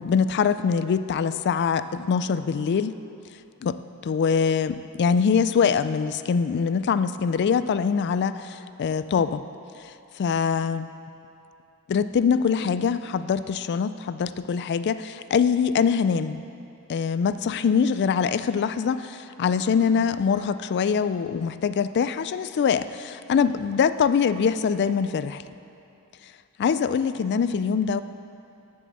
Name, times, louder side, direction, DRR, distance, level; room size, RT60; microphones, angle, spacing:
voice 1, 0.0-2.9 3.6-9.4 10.2-10.9 11.9-16.4 16.9-25.4 26.6-28.0, left 6 dB, 50° left, 13 dB, 0.3 m, -23 dB
7.8 x 6.8 x 7.6 m, 2.7 s
head